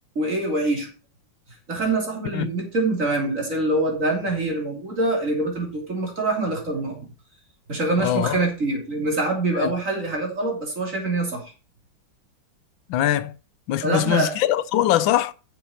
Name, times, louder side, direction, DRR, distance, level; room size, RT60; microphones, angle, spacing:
voice 1, 0.1-0.9 1.7-7.1 7.7-11.4 13.8-14.4, right 2 dB, 40° right, 3.3 m, -25 dB
voice 2, 8.0-8.4 9.6-9.7 12.9-13.3 13.7-15.3, left 12 dB, 90° left, 1.5 m, -22 dB
9.3 x 6.9 x 4.3 m
omnidirectional pair, 2.1 m